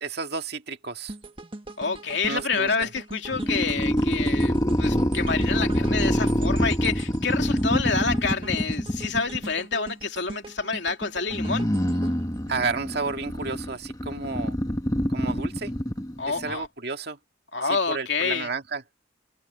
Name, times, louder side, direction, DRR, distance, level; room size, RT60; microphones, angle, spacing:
voice 1, 0.0-1.1 2.3-2.9 12.5-14.6 15.1-15.7 16.3-17.2 17.6-18.8, right 4 dB, 60° right, 2.1 m, -31 dB
sound 1, 1.1-13.3 13.7-13.8, right 2 dB, 30° right, 1.5 m, -41 dB
voice 2, 1.8-11.7 16.2-16.7 17.5-18.5, left 5 dB, 70° left, 2.9 m, -28 dB
sound 2, 3.3-9.5 11.3-16.6, equal, 20° left, 1.6 m, -26 dB
head